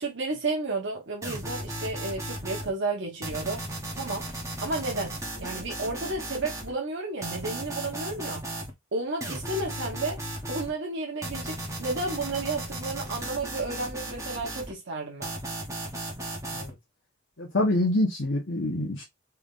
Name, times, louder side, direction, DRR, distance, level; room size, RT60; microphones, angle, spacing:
voice 1, 0.0-3.6 4.0-4.3 4.6-8.5 8.9-10.2 10.5-15.3, right 3 dB, 60° right, 1.0 m, -32 dB
sound 1, 1.2-2.7 3.2-6.7 7.2-8.7 9.2-10.7 11.2-14.7 15.2-16.7, right 1 dB, 15° right, 1.0 m, -36 dB
voice 2, 17.4-19.0, left 1 dB, 60° left, 1.0 m, -26 dB
3.7 x 3.4 x 2.5 m
head